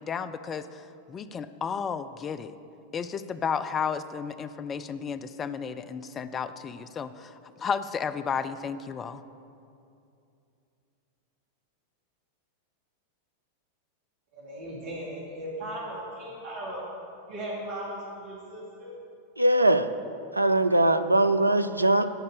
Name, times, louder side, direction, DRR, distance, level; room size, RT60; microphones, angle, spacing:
voice 1, 0.0-2.5 2.9-9.2, left 6 dB, 25° left, 12 dB, 0.4 m, -33 dB
voice 2, 14.3-16.8 17.3-18.9, right 1 dB, 45° right, -6 dB, 2.5 m, -37 dB
voice 3, 19.4-19.9 20.3-22.1, right 1 dB, 85° right, 11 dB, 0.4 m, -21 dB
12.0 x 5.3 x 6.9 m, 2.6 s
figure-of-eight pair, 90°, 0 cm